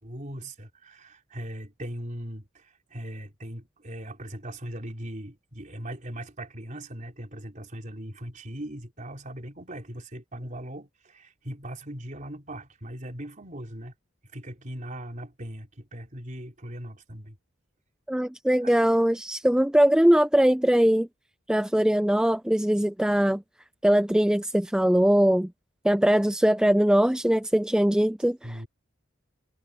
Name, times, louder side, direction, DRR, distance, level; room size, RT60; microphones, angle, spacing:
voice 1, 0.0-13.9 14.3-17.4 18.6-18.8 28.4-28.7, right 1 dB, 40° right, 4.0 m, -39 dB
voice 2, 18.1-21.1 21.5-23.4 23.8-25.5 25.8-28.6, equal, 5° right, 0.4 m, -21 dB
head